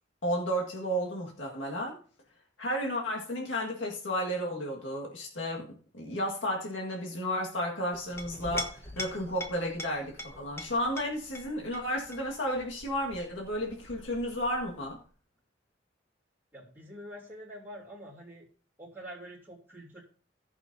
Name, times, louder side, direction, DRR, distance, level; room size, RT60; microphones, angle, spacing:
voice 1, 0.2-2.0 2.6-5.7 5.9-15.0, equal, 85° left, -1 dB, 1.8 m, -32 dB
Chink clink, 7.9-15.0, left 1 dB, 15° left, 1.3 m, -43 dB
voice 2, 16.5-18.5 18.8-20.0, equal, 10° right, -6 dB, 3.1 m, -46 dB
18.5 x 6.2 x 2.7 m, 0.41 s
head